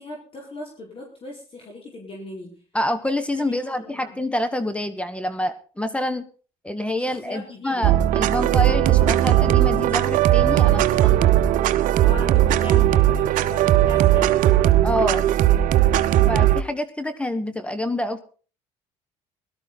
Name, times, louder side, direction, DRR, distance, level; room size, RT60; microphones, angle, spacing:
voice 1, 0.0-2.6 3.3-4.2 7.0-7.9 10.7-11.2 12.0-14.4, left 2 dB, 40° left, -1 dB, 4.8 m, -38 dB
voice 2, 2.7-6.3 6.6-10.8 14.8-15.3 16.3-18.2, left 1 dB, 10° left, 11 dB, 1.3 m, -27 dB
sound 1, 7.8-16.6, right 13 dB, 70° right, 0.8 m, -18 dB
17.0 x 13.0 x 4.1 m, 0.38 s
supercardioid pair, 80°, 14 cm